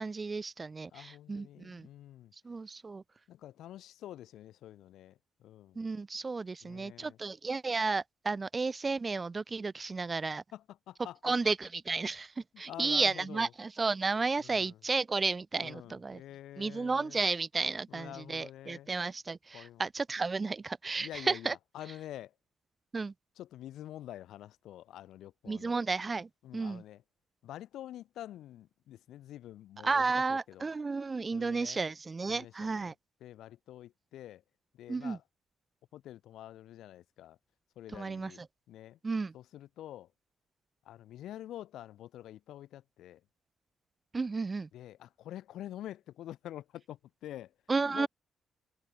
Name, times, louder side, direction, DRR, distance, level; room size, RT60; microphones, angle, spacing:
voice 1, 0.0-1.9 2.4-3.0 5.8-10.4 11.2-16.2 16.6-21.5 22.9-23.1 25.5-26.8 29.8-32.9 34.9-35.2 37.9-38.5 39.0-39.3 44.1-44.7 47.7-48.1, right 4 dB, 20° right, 0.5 m, -33 dB
voice 2, 0.9-2.3 3.3-5.8 6.6-7.2 10.1-10.2 10.5-11.3 12.5-13.5 14.4-14.8 15.6-17.2 17.9-18.9 19.5-19.9 21.0-22.3 23.4-25.8 26.4-27.0 27.4-30.7 31.3-31.9 32.3-32.9 33.2-34.4 34.7-35.2 35.9-37.4 37.8-39.0 39.3-40.1 40.9-43.2 44.7-47.5 47.9-48.1, left 12 dB, 85° left, 2.1 m, -47 dB
cardioid pair, 175°, 0 cm